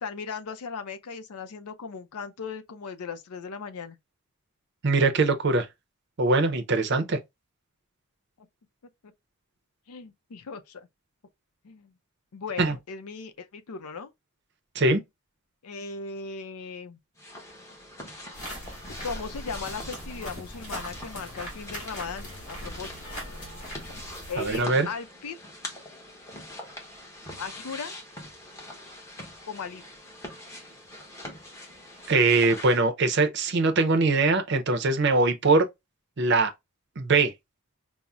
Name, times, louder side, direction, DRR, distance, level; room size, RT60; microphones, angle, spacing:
voice 1, 0.0-4.0 9.9-10.9 11.6-11.9 12.3-14.1 15.6-17.0 19.0-23.0 24.3-25.4 27.4-28.0 29.5-29.8, left 5 dB, 85° left, 0.5 m, -37 dB
voice 2, 4.8-5.7 6.2-7.2 12.6-12.7 14.8-15.0 24.4-24.9 32.1-35.7 36.2-36.5 37.0-37.3, right 3 dB, 50° right, 0.6 m, -22 dB
sound 1, 17.2-32.8, left 1 dB, 15° left, 0.8 m, -43 dB
sound 2, 18.3-24.6, equal, 35° left, 2.0 m, -40 dB
5.3 x 2.0 x 2.3 m
head